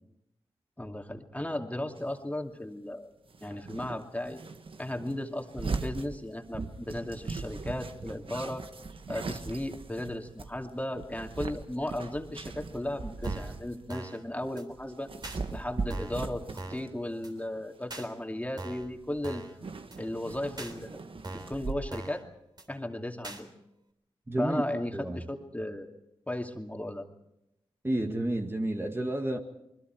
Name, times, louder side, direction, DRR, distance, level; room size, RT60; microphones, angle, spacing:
voice 1, 0.8-3.1 3.4-4.4 4.8-8.6 9.1-15.1 15.5-19.4 20.0-21.0 21.3-22.2 22.7-23.5 24.4-25.9 26.3-27.0, left 1 dB, 15° left, 3 dB, 2.5 m, -35 dB
sound 1, 2.0-2.1 3.3-14.0 14.3-17.0 17.3-17.6 18.4-18.5 18.8-19.2 19.5-21.7, right 4 dB, 55° right, 1.4 m, -39 dB
sound 2, 13.2-13.6 13.9-14.2 14.6-14.7 15.2-15.4 15.9-16.2 16.6-16.9 17.2-17.3 17.9-18.1 18.6-18.9 19.2-19.6 19.9-20.0 20.6-20.7 21.2-21.6 21.9-22.2 22.6-22.7 23.2-23.4, right 2 dB, 40° right, 3.5 m, -41 dB
voice 2, 24.3-24.6 24.9-25.2 27.8-29.4, right 1 dB, 20° right, 3 dB, 1.9 m, -30 dB
28.5 x 21.0 x 4.6 m, 0.83 s
cardioid pair, 45°, 11 cm